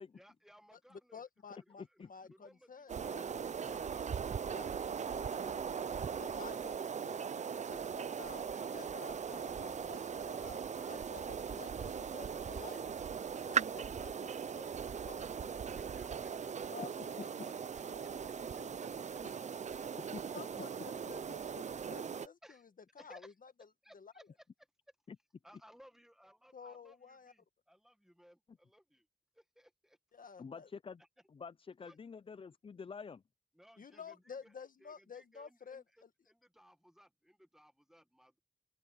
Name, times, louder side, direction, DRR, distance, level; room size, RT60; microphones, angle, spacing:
voice 1, 0.1-1.3 1.5-3.1 8.4-8.7 10.4-11.0 15.7-16.8 22.4-22.7 23.0-23.3 23.8-24.4 25.4-29.1 29.3-30.0 31.0-31.1 31.8-32.0 33.5-34.5 34.8-38.4, equal, 5° right, 1.7 m, -62 dB
voice 2, 0.7-3.8 4.5-5.5 6.1-12.9 13.4-15.5 16.7-17.5 17.9-18.0 18.3-18.9 19.2-19.3 20.3-22.7 22.9-23.5 23.9-24.1 26.5-27.3 30.1-30.7 33.8-36.1, left 6 dB, 60° left, 1.5 m, -52 dB
voice 3, 1.8-2.1 20.1-20.2 25.1-25.2 30.4-31.0 31.3-33.2, left 5 dB, 35° left, 0.4 m, -48 dB
sound 1, 2.9-22.3, right 7 dB, 50° right, 0.5 m, -39 dB
Fire, 9.2-16.8, right 6 dB, 80° right, 3.6 m, -59 dB
open air
cardioid pair, 75°, 16 cm